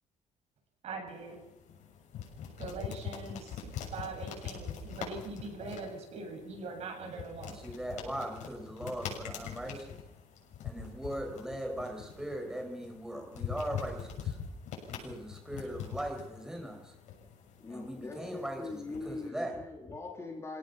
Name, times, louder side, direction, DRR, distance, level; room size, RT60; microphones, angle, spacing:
voice 1, 0.8-1.4 2.6-7.6, right 3 dB, 55° right, 3 dB, 7.7 m, -42 dB
sound 1, 1.1-19.3, left 7 dB, 75° left, 7.2 m, -43 dB
voice 2, 7.6-10.0 10.6-14.4 14.9-16.9 17.7-19.6, right 1 dB, 5° right, 2 dB, 5.4 m, -39 dB
voice 3, 17.6-20.6, left 3 dB, 20° left, 1 dB, 3.9 m, -42 dB
27.0 x 17.5 x 5.9 m, 1.0 s
cardioid pair, 150°, 13 cm